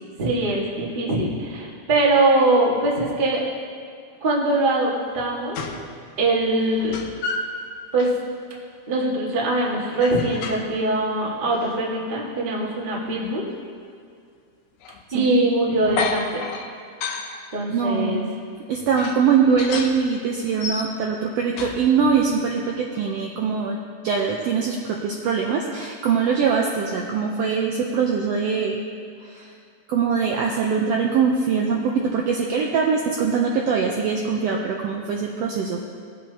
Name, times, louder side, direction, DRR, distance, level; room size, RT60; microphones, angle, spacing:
voice 1, 0.2-3.4 4.2-5.6 6.2-7.0 7.9-8.1 8.9-13.4 15.1-16.4 17.5-18.2, right 2 dB, 35° right, -4 dB, 0.8 m, -22 dB
sound 1, 5.1-5.2 5.5-5.9 6.2-7.6 8.0-8.2 10.0-10.8 11.2-11.8 13.2-13.3 14.8-15.1 15.8-17.4 18.1-18.2 19.0-20.0 20.4-21.2 21.6-22.3, left 4 dB, 70° left, 1.6 m, -32 dB
voice 2, 17.7-18.2 18.7-23.8 24.0-28.8 29.3-29.4 29.9-36.0, right 6 dB, 80° right, 0 dB, 1.5 m, -22 dB
18.5 x 7.4 x 2.8 m, 2.3 s
omnidirectional pair, 3.5 m